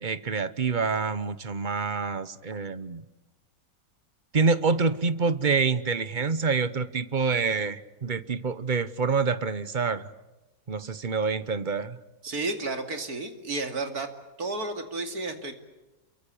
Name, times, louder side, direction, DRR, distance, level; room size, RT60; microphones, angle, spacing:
voice 1, 0.0-3.0 4.3-10.1 10.7-12.0, right 4 dB, 35° right, 14 dB, 0.9 m, -27 dB
voice 2, 12.2-14.1 14.4-15.5, right 3 dB, 55° right, 6 dB, 3.0 m, -32 dB
28.0 x 23.5 x 8.5 m, 1.1 s
omnidirectional pair, 1.9 m